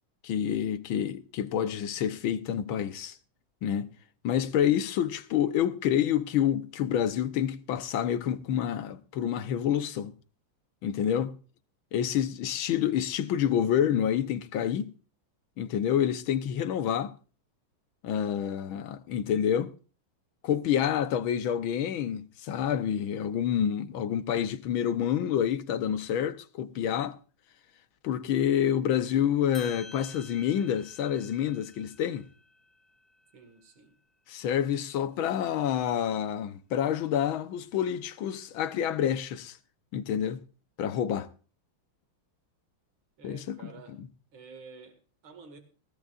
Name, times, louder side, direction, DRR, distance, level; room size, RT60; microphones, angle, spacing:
voice 1, 0.2-3.2 3.6-3.9 4.2-10.2 10.8-11.4 11.9-14.9 15.6-17.2 18.0-19.7 20.4-27.2 28.0-32.3 34.3-39.6 39.9-40.4 40.8-41.3 43.2-43.6, left 9 dB, 75° left, 1.7 m, -28 dB
sound 1, 29.5-34.0, left 2 dB, ahead, 1.2 m, -51 dB
voice 2, 33.3-34.0 43.2-44.0 44.3-45.6, right 4 dB, 75° right, 2.9 m, -50 dB
18.0 x 16.0 x 2.5 m
omnidirectional pair, 2.3 m